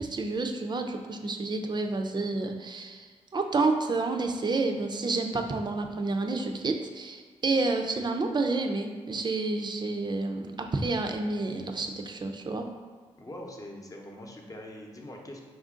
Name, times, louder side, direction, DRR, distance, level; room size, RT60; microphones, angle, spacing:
voice 1, 0.0-3.1 3.3-12.7, right 3 dB, 35° right, 4 dB, 0.5 m, -29 dB
voice 2, 13.2-15.4, left 1 dB, 30° left, 0 dB, 0.9 m, -43 dB
4.8 x 2.5 x 3.7 m, 1.5 s
supercardioid pair, 45°, 13 cm